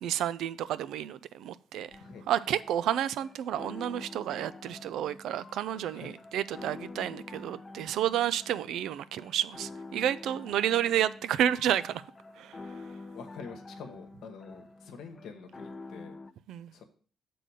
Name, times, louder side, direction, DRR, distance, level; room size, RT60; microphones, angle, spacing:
voice 1, 0.0-1.9 2.3-12.0 12.4-12.6 16.5-16.7, right 11 dB, 80° right, 16 dB, 0.4 m, -30 dB
sound 1, 1.9-16.3, left 3 dB, 30° left, 0.6 m, -47 dB
voice 2, 13.1-16.2 16.7-16.8, left 5 dB, 80° left, 6 dB, 1.1 m, -46 dB
6.7 x 3.8 x 6.3 m, 0.44 s
cardioid pair, 90°, 0 cm